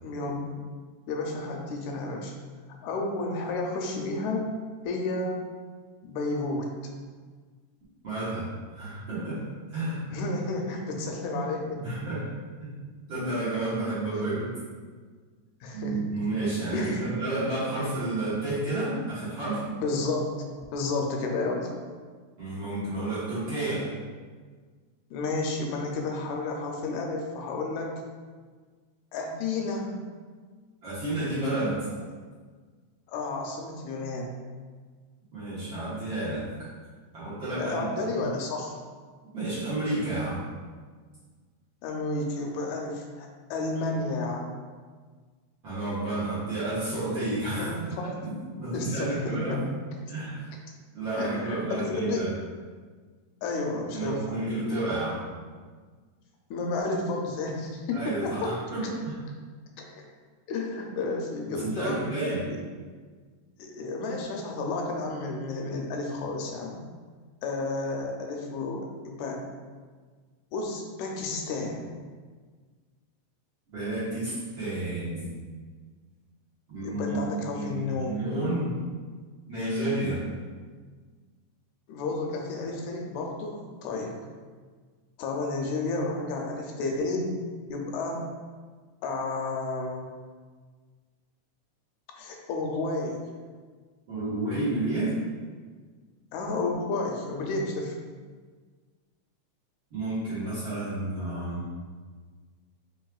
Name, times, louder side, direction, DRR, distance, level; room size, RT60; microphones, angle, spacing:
voice 1, 0.0-0.5 1.1-2.3 2.8-4.5 4.9-5.4 6.0-7.0 10.1-11.8 15.6-16.0 16.7-17.1 19.7-21.7 25.1-27.9 29.1-29.9 33.1-34.4 37.6-38.8 41.8-44.5 47.6-48.1 48.7-49.6 51.2-52.3 53.4-54.4 56.5-58.6 58.8-58.9 59.8-60.1 60.5-62.0 63.6-66.8 67.4-69.4 70.5-71.9 76.8-78.2 81.9-84.2 85.2-87.3 87.7-88.2 89.0-90.1 92.2-93.2 96.3-98.0, left 3 dB, 85° left, 1 dB, 1.9 m, -31 dB
voice 2, 8.0-8.4 8.7-9.4 9.7-10.0 11.8-12.2 13.1-14.5 15.7-19.6 22.4-23.9 30.8-31.9 35.3-36.4 37.1-38.3 39.3-40.4 45.6-47.7 48.2-48.3 48.6-49.6 50.1-50.4 50.9-52.3 53.9-55.2 57.9-59.2 61.6-62.5 73.7-75.3 76.7-77.2 77.5-78.7 79.5-80.2 94.1-95.2 99.9-101.6, right 2 dB, 55° right, -12 dB, 1.6 m, -30 dB
4.7 x 3.2 x 2.3 m, 1.5 s
omnidirectional pair, 3.3 m